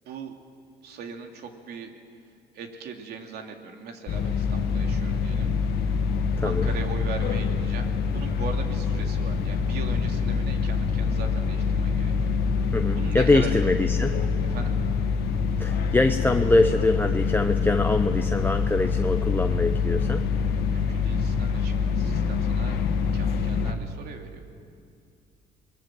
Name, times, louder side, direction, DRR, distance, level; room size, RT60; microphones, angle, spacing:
voice 1, 0.0-0.4 0.8-1.9 2.5-5.5 6.4-12.4 12.9-13.6 14.4-14.7 20.5-22.8 23.1-24.4, right 5 dB, 70° right, 4 dB, 2.9 m, -39 dB
sound 1, 4.1-23.7, left 5 dB, 70° left, 2.0 m, -25 dB
voice 2, 6.4-6.7 12.7-14.2 15.6-20.2, left 2 dB, 10° left, 6 dB, 0.8 m, -23 dB
28.0 x 21.0 x 7.7 m, 2.4 s
cardioid pair, 110°, 17 cm